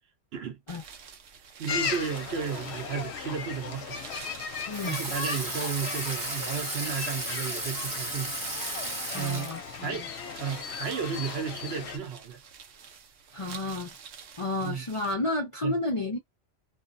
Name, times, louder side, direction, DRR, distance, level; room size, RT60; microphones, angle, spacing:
sound 1, 0.7-15.1, right 7 dB, 90° right, 1.0 m, -48 dB
voice 1, 1.6-4.0 4.8-8.4 9.2-9.5 9.8-10.1 10.4-12.4 14.6-14.8 15.6-15.7, right 6 dB, 65° right, 0.8 m, -33 dB
sound 2, 1.7-12.0, left 6 dB, 70° left, 0.8 m, -37 dB
voice 2, 4.7-5.0 9.1-10.1 13.3-13.9 14.4-16.2, left 2 dB, 45° left, 0.4 m, -31 dB
Water tap faucet / Sink (filling or washing), 4.7-9.9, right 2 dB, 25° right, 0.5 m, -34 dB
2.5 x 2.1 x 2.5 m
omnidirectional pair, 1.2 m